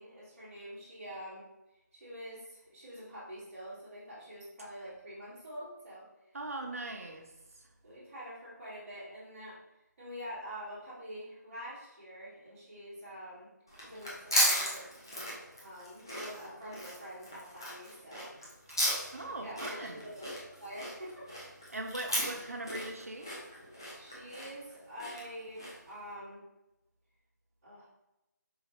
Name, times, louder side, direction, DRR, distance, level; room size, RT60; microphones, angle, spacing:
voice 1, 0.0-1.4 1.9-6.3 7.8-9.5 10.0-13.5 13.8-14.9 15.6-18.5 19.0-20.3 20.6-21.3 23.9-26.4 27.6-27.9, equal, 10° right, -15 dB, 1.5 m, -46 dB
voice 2, 6.3-7.3 7.6-7.7 19.1-20.0 21.7-23.4, right 2 dB, 50° right, 3 dB, 0.7 m, -40 dB
sound 1, 13.7-25.9, equal, 15° left, 0.4 m, -35 dB
4.7 x 3.1 x 3.0 m, 0.95 s
figure-of-eight pair, 175°, 10 cm